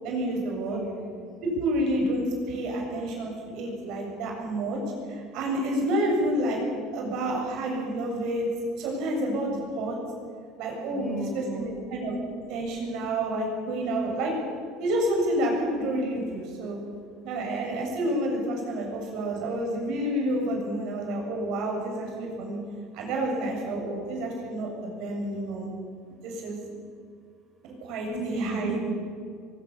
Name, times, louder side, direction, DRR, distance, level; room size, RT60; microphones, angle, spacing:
voice 1, 0.0-0.8 1.4-4.8 5.1-8.5 8.8-10.0 10.6-12.2 12.5-14.3 14.8-16.8 17.2-22.6 22.9-25.7 26.1-26.6 27.8-28.8, right 1 dB, 60° right, 0 dB, 7.3 m, -29 dB
voice 2, 0.6-1.2 10.9-11.9 26.7-26.8 28.1-28.8, right 3 dB, 5° left, -1 dB, 5.3 m, -34 dB
22.5 x 22.5 x 7.3 m, 2.3 s
cardioid pair, 155°, 0 cm